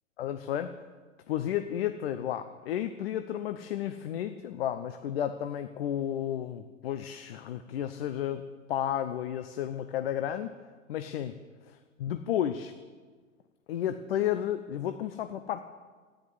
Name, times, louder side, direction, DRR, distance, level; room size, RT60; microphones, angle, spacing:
voice 1, 0.2-0.8 1.3-8.4 8.7-10.5 10.9-11.4 11.7-12.7 13.7-15.6, left 10 dB, 50° left, 10 dB, 0.7 m, -32 dB
13.5 x 10.5 x 7.8 m, 1.5 s
figure-of-eight pair, 100°, 39 cm